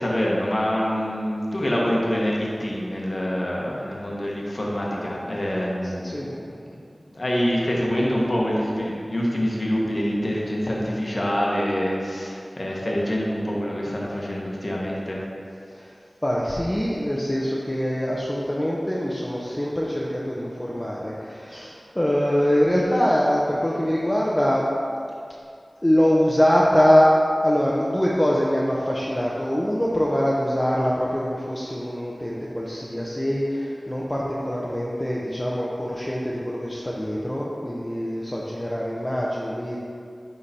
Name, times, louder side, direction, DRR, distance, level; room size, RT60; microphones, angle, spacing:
voice 1, 0.0-6.4 7.1-15.2, equal, 50° left, -4 dB, 1.2 m, -25 dB
voice 2, 16.2-24.7 25.8-27.1 27.4-39.8, equal, 20° left, -5 dB, 0.8 m, -23 dB
9.8 x 3.8 x 4.2 m, 2.4 s
wide cardioid pair, 45°, 0 cm